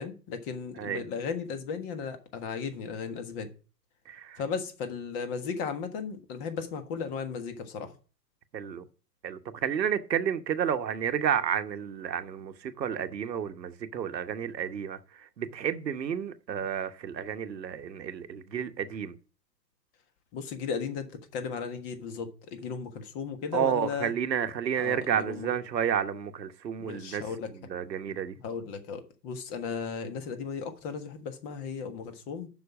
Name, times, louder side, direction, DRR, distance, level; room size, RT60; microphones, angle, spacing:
voice 1, 0.0-3.5 4.4-7.9 20.3-21.1 21.3-24.1 24.8-25.5 26.8-27.5 28.4-32.5, left 5 dB, 35° left, 1.5 m, -35 dB
voice 2, 4.1-4.4 8.5-8.8 9.2-19.2 23.5-27.2 27.7-28.3, right 8 dB, 85° right, 1.1 m, -31 dB
7.2 x 6.0 x 7.2 m
hypercardioid pair, 130°, 50 cm